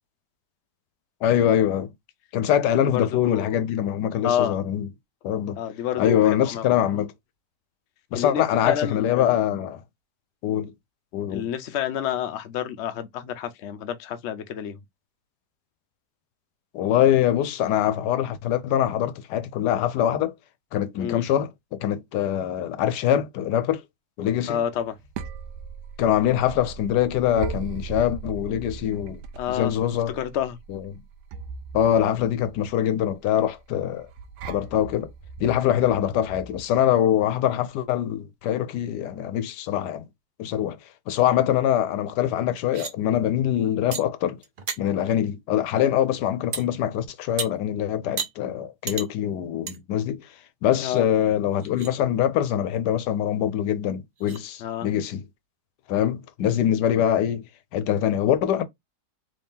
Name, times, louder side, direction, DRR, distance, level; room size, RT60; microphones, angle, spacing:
voice 1, 1.2-1.9 2.3-4.9 5.2-5.6 6.0-7.1 8.1-9.8 10.4-10.7 11.1-11.5 16.7-20.3 20.7-23.8 24.2-24.6 26.0-29.2 29.5-30.2 30.7-30.9 31.7-34.1 34.5-35.1 35.4-40.0 40.4-40.8 41.1-44.4 44.8-50.3 50.6-55.2 55.9-57.4 57.7-58.6, left 10 dB, 85° left, 1.2 m, -23 dB
voice 2, 2.9-3.6 4.2-4.5 5.6-6.7 8.1-9.5 11.3-14.8 21.0-21.2 24.5-25.0 29.4-29.7 30.1-30.6 50.8-51.0 54.6-54.9 56.4-56.6, left 10 dB, 60° left, 0.7 m, -29 dB
sound 1, 24.8-36.6, right 5 dB, 80° right, 1.2 m, -39 dB
sound 2, 42.6-42.9 43.9-44.0 44.4-44.8 46.5-46.6 47.4-47.5 48.2-48.3 48.9-49.1 49.7-49.8 50.2-50.3 51.0-51.1 51.5-51.9 53.6-53.7 54.2-54.4, right 5 dB, 50° right, 0.6 m, -32 dB
3.3 x 2.8 x 3.5 m
omnidirectional pair, 1.8 m